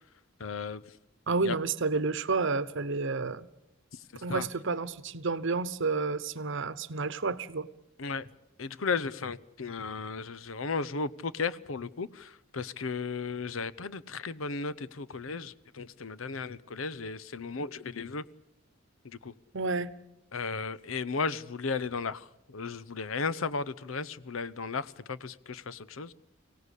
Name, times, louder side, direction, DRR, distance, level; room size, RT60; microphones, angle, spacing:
voice 1, 0.4-0.8 1.4-1.6 3.9-4.5 8.0-8.3 8.6-18.2 19.0-19.3 20.3-26.1, left 4 dB, 85° left, 0.8 m, -35 dB
voice 2, 1.3-3.5 4.2-7.7 19.5-19.9, right 4 dB, 65° right, 0.9 m, -30 dB
24.0 x 17.0 x 8.3 m
head